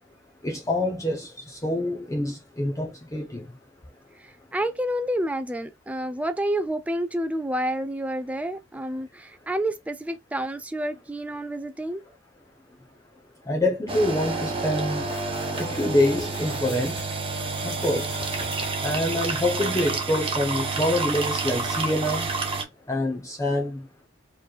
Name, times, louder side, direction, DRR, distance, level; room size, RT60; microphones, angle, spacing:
voice 1, 0.4-3.4 13.5-15.1 15.6-17.0 17.6-18.1 18.8-22.3 22.9-23.8, left 1 dB, 15° left, 0.7 m, -26 dB
voice 2, 4.2-12.0, right 1 dB, 5° right, 0.3 m, -29 dB
sound 1, 13.9-22.6, right 3 dB, 25° right, 1.0 m, -29 dB
sound 2, 15.0-17.1 17.5-19.0, left 3 dB, 70° left, 1.3 m, -43 dB
4.7 x 3.1 x 2.4 m
head